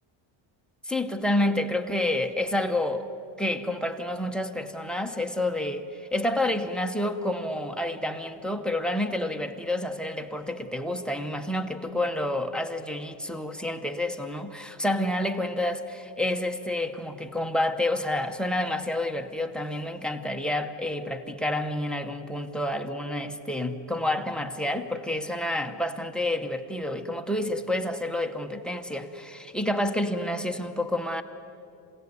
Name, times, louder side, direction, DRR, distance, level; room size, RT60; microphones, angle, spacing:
voice 1, 0.9-3.1 3.4-31.2, left 1 dB, ahead, 10 dB, 0.8 m, -29 dB
27.0 x 17.0 x 9.5 m, 2.8 s
cardioid pair, 165°, 47 cm